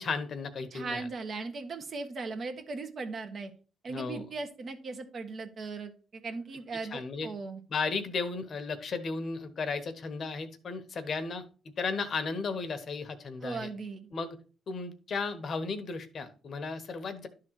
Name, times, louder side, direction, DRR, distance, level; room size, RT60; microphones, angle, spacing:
voice 1, 0.0-1.1 3.9-4.2 6.9-7.3 7.7-11.4 11.8-13.7 14.1-14.4 14.7-17.3, left 4 dB, 50° left, 9 dB, 1.2 m, -34 dB
voice 2, 0.7-3.5 3.8-7.6 13.4-14.1, right 3 dB, 50° right, 6 dB, 1.5 m, -38 dB
11.5 x 3.9 x 4.7 m, 0.38 s
cardioid pair, 90°, 0 cm